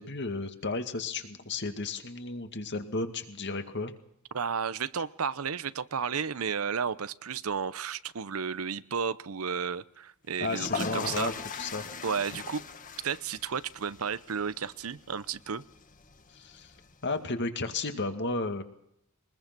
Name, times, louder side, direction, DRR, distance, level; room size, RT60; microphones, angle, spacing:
voice 1, 0.0-3.9 10.4-11.9 16.4-16.7 17.0-18.6, left 3 dB, 55° left, 7 dB, 2.2 m, -33 dB
voice 2, 4.3-11.3 12.0-12.6 13.0-15.6, right 6 dB, 75° right, 17 dB, 0.8 m, -33 dB
sound 1, 10.3-17.2, left 5 dB, 40° left, 1.5 m, -41 dB
22.5 x 21.0 x 6.1 m, 0.74 s
head